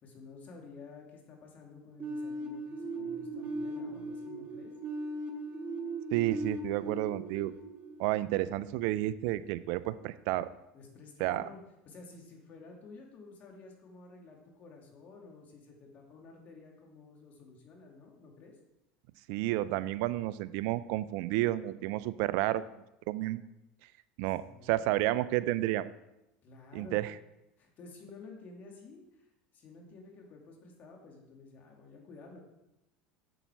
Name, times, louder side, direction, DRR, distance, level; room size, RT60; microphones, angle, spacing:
voice 1, 0.0-4.7 10.7-11.6 11.9-18.6 24.4-24.9 26.4-27.0 27.6-29.3 29.5-32.4, left 3 dB, 45° left, 1 dB, 2.6 m, -52 dB
sound 1, 2.0-8.8, right 2 dB, 35° right, 1.8 m, -39 dB
voice 2, 6.1-7.5 8.0-10.5 11.2-11.5 19.3-22.6 23.1-23.4 24.2-25.9 26.7-27.1, right 16 dB, 65° right, 16 dB, 0.5 m, -31 dB
7.9 x 7.4 x 4.6 m, 0.90 s
hypercardioid pair, 90°, 4 cm